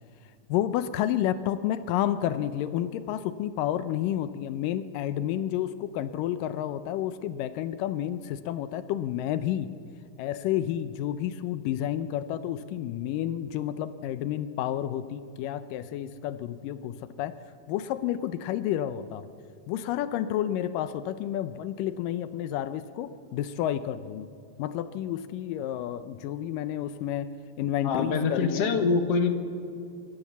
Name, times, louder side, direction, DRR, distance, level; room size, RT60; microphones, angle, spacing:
voice 1, 0.5-9.7 10.2-17.3 17.7-19.3 19.7-24.3 24.6-27.3 27.6-28.7, left 11 dB, 85° left, 12 dB, 2.3 m, -30 dB
voice 2, 27.8-29.3, left 5 dB, 55° left, 6 dB, 2.1 m, -25 dB
26.5 x 13.5 x 7.2 m, 2.6 s
omnidirectional pair, 3.8 m